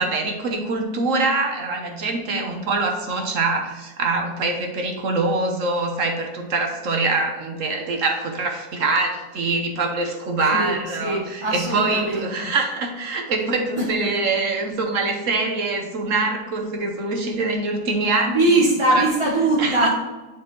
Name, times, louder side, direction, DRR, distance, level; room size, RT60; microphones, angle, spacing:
voice 1, 0.0-19.1 19.6-19.9, right 3 dB, 55° right, 3 dB, 1.3 m, -24 dB
voice 2, 11.0-12.5 13.8-14.1 18.3-19.9, right 2 dB, 20° right, -4 dB, 1.0 m, -21 dB
10.5 x 4.5 x 3.1 m, 1.2 s
omnidirectional pair, 1.8 m